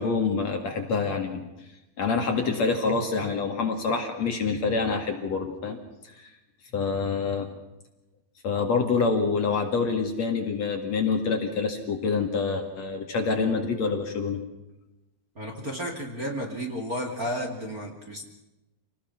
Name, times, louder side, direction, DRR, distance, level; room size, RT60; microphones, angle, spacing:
voice 1, 0.0-1.5 2.0-5.8 6.0-6.3 6.7-7.5 8.4-14.4, left 4 dB, 50° left, 4 dB, 3.0 m, -26 dB
voice 2, 15.4-18.2, equal, 25° right, 1 dB, 2.7 m, -32 dB
27.5 x 19.0 x 6.0 m, 0.97 s
omnidirectional pair, 4.2 m